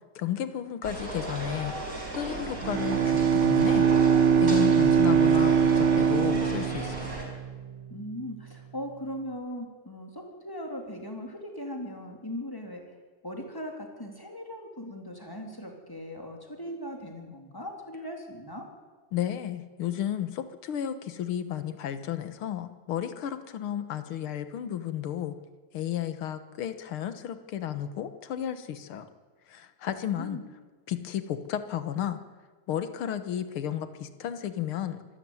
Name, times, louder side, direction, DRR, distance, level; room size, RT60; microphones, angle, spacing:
voice 1, 0.1-1.7 2.1-3.8 4.4-7.1 19.1-25.3 25.7-29.1 29.5-30.4 30.9-32.2 32.7-35.0, left 10 dB, 60° left, 11 dB, 1.6 m, -33 dB
sound 1, 0.8-7.3, right 1 dB, 25° right, 5.3 m, -36 dB
Bowed string instrument, 2.6-7.8, right 7 dB, 75° right, 2.3 m, -22 dB
voice 2, 7.9-12.9 13.2-18.7 29.9-30.5, equal, 5° left, 2 dB, 2.9 m, -39 dB
26.0 x 12.5 x 9.6 m, 1.4 s
omnidirectional pair, 3.4 m